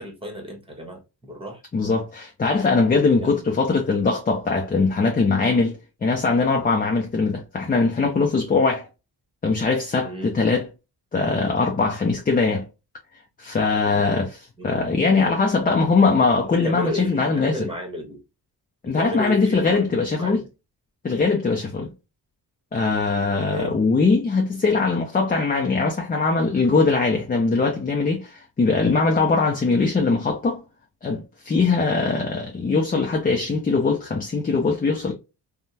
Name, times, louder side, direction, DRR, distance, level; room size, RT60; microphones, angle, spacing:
voice 1, 0.0-1.6 2.6-2.7 3.1-3.3 10.0-10.4 13.8-14.1 14.6-14.9 16.5-18.2 18.8-20.5 23.3-23.8 31.9-32.3, equal, 15° right, 1.0 m, -34 dB
voice 2, 1.7-8.9 9.4-10.7 11.1-12.7 13.4-14.4 14.6-17.7 18.8-20.4 21.0-21.9 22.7-30.6 31.0-35.1, left 4 dB, 20° left, 0.5 m, -21 dB
3.5 x 2.1 x 2.7 m
cardioid pair, 125°, 41 cm